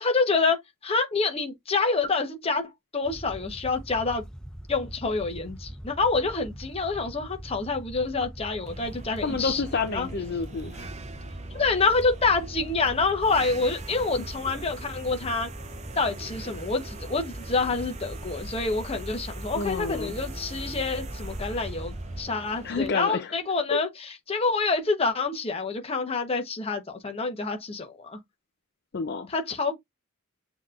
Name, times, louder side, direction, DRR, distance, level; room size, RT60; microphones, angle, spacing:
voice 1, 0.0-4.3 4.7-10.1 11.5-15.5 16.0-28.2 29.3-29.7, left 4 dB, 25° left, 0.9 m, -27 dB
sound 1, 3.0-22.2, equal, 5° left, 1.2 m, -41 dB
sound 2, 8.7-22.9, right 3 dB, 30° right, 0.6 m, -43 dB
voice 2, 9.2-10.9 19.5-20.1 22.6-23.3 23.7-23.8 28.9-29.3, left 4 dB, 50° left, 0.5 m, -29 dB
7.1 x 3.0 x 2.4 m
head